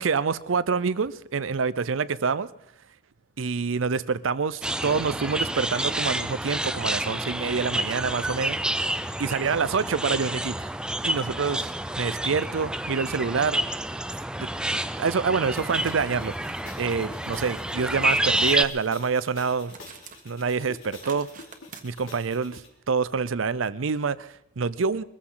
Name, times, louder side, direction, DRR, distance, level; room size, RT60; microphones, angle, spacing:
voice 1, 0.0-2.5 3.4-8.6 9.2-10.7 11.0-11.7 12.0-13.6 14.4-14.5 15.0-16.3 16.8-19.7 20.2-21.3 21.8-22.6 22.9-25.0, right 5 dB, 85° right, 0.6 m, -26 dB
sound 1, 4.6-18.6, right 1 dB, 5° right, 0.5 m, -29 dB
sound 2, 15.5-22.7, left 3 dB, 85° left, 2.9 m, -48 dB
sound 3, 15.8-16.2 16.5-16.6 17.1-17.5 18.2-18.6 18.9-20.3 20.6-21.8, right 6 dB, 45° right, 1.4 m, -47 dB
22.5 x 14.5 x 3.9 m
head